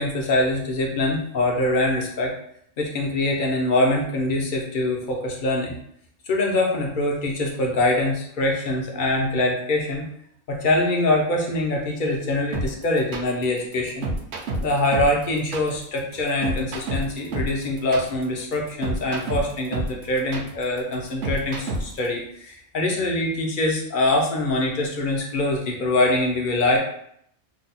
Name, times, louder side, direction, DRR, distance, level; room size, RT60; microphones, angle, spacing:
voice 1, 0.0-2.3 2.8-5.8 6.3-10.1 10.5-14.1 14.6-26.8, left 2 dB, 55° left, 0 dB, 0.6 m, -24 dB
sound 1, 12.5-22.1, right 2 dB, 65° right, 0.8 m, -29 dB
2.6 x 2.1 x 4.0 m, 0.70 s
omnidirectional pair, 1.3 m